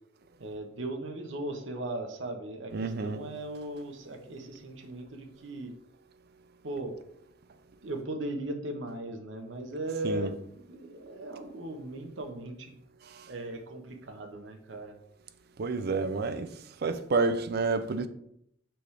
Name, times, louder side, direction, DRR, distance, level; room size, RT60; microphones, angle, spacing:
voice 1, 0.4-5.7 6.6-6.9 7.8-12.7 13.3-15.0, right 1 dB, 80° right, 1.0 m, -38 dB
voice 2, 2.7-3.2 10.0-10.3 13.1-13.3 15.6-16.5 16.8-18.1, right 3 dB, 55° right, 0.5 m, -29 dB
6.1 x 3.3 x 4.8 m
head